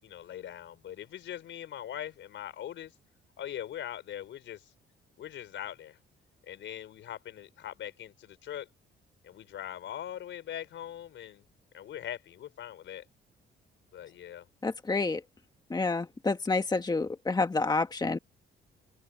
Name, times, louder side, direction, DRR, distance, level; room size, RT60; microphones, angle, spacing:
voice 1, 0.0-2.9 3.4-4.7 5.2-6.0 6.4-8.7 9.2-11.5 11.7-13.0 13.9-14.5, left 11 dB, 70° left, 4.7 m, -41 dB
voice 2, 14.6-15.2 15.7-18.2, left 3 dB, 20° left, 1.5 m, -28 dB
cardioid pair, 90°, 20 cm